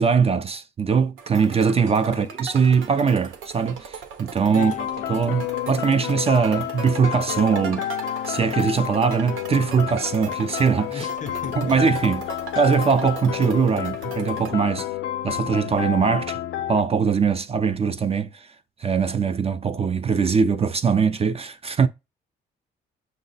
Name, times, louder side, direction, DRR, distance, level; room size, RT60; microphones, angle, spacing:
voice 1, 0.0-4.7 5.1-7.9 8.3-11.1 11.6-14.9 15.2-16.4 16.7-18.5 18.8-21.9, right 6 dB, 30° right, 0.4 m, -21 dB
sound 1, 1.2-14.5, right 6 dB, 85° right, 0.8 m, -39 dB
voice 2, 4.5-5.2 10.9-11.7, left 6 dB, 40° left, 0.5 m, -36 dB
sound 2, 4.6-16.8, left 12 dB, 85° left, 0.5 m, -30 dB
5.7 x 2.0 x 4.0 m
cardioid pair, 90°, 20 cm